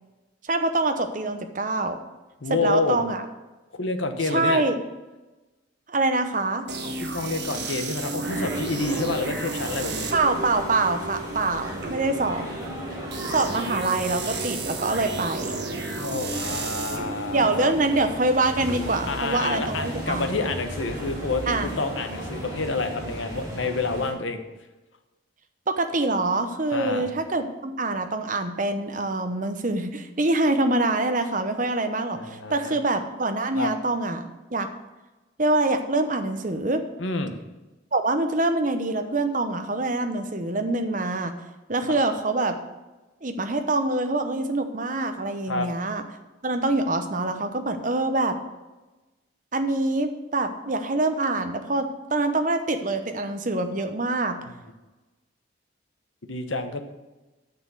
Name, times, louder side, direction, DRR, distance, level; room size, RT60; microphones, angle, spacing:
voice 1, 0.5-2.0 2.5-3.2 4.3-4.8 5.9-6.7 10.1-12.4 13.3-15.6 17.3-20.3 21.5-21.7 25.7-34.7 35.4-36.8 37.9-41.3 41.7-42.5 43.2-46.0 46.4-48.4 49.5-54.4, right 2 dB, 40° right, 7 dB, 0.9 m, -25 dB
voice 2, 2.4-3.0 3.8-4.6 6.8-10.1 16.0-17.8 19.1-24.4 26.7-27.1 32.1-32.8 33.6-33.7 37.0-37.3 45.5-45.7 56.3-56.8, left 3 dB, 75° left, 7 dB, 1.1 m, -28 dB
sound 1, 6.7-20.4, right 3 dB, 55° right, 1.5 m, -34 dB
sound 2, 8.2-24.1, equal, 20° right, 4.0 m, -36 dB
9.4 x 6.7 x 6.9 m, 1.1 s
head